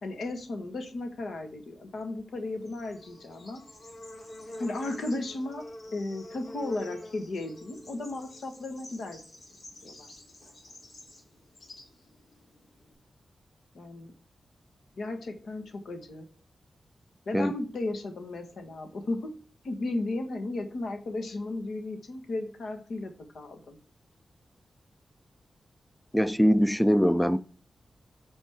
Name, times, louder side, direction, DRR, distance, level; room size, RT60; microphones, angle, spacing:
voice 1, 0.0-3.6 4.6-9.2 9.8-10.1 13.7-14.1 15.0-16.3 17.2-19.3 19.6-23.8, left 2 dB, 75° left, 1.4 m, -35 dB
Bird / Insect, 2.3-12.9, left 1 dB, 60° left, 3.5 m, -47 dB
voice 2, 26.1-27.4, equal, 5° left, 0.3 m, -22 dB
8.6 x 5.3 x 3.6 m
wide cardioid pair, 100°, 0 cm